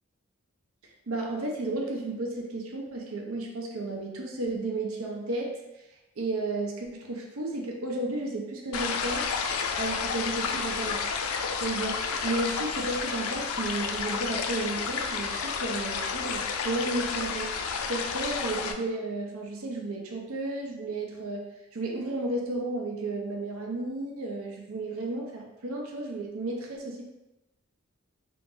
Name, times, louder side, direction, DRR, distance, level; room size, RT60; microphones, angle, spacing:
voice 1, 1.1-5.5 6.2-9.4 9.8-17.6 17.9-21.4 21.7-27.0, right 2 dB, 85° right, 0 dB, 0.7 m, -33 dB
sound 1, 8.7-18.7, left 5 dB, 90° left, 0.4 m, -31 dB
2.9 x 2.5 x 3.7 m, 0.96 s
head